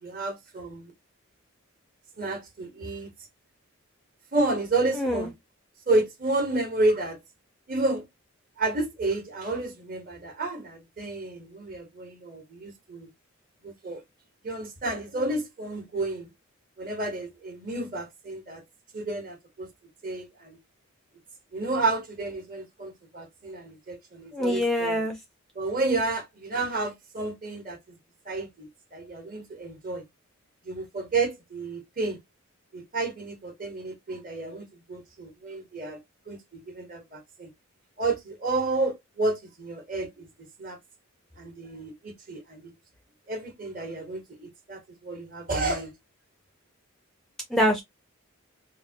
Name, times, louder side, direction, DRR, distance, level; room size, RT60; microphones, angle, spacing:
voice 1, 0.0-0.9 2.2-3.1 4.3-5.3 5.9-7.2 7.7-8.0 8.6-13.1 13.6-14.0 14.4-16.3 16.8-18.6 18.9-19.7 20.0-20.6 21.5-25.0 25.5-27.8 28.2-30.0 30.6-32.2 32.7-36.0 36.3-37.5 38.0-40.3 40.6-40.8 41.4-42.7 43.3-45.9, right 2 dB, 40° right, 1.1 m, -30 dB
voice 2, 4.9-5.3 24.3-25.1 47.5-47.8, equal, ahead, 0.5 m, -24 dB
3.5 x 2.1 x 2.7 m
head